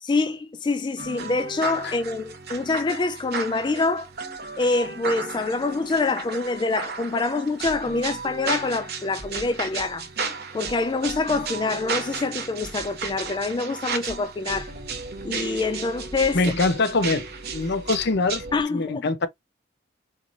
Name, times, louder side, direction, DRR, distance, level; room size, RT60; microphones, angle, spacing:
voice 1, 0.0-4.1 4.6-10.1 10.5-14.7 15.2-16.4 18.5-19.1, left 3 dB, 25° left, 0.4 m, -26 dB
sound 1, 1.0-18.6, right 4 dB, 55° right, 1.2 m, -34 dB
voice 2, 16.3-17.3 17.5-18.4 18.7-19.3, left 3 dB, 60° left, 0.8 m, -23 dB
4.4 x 3.2 x 2.5 m
head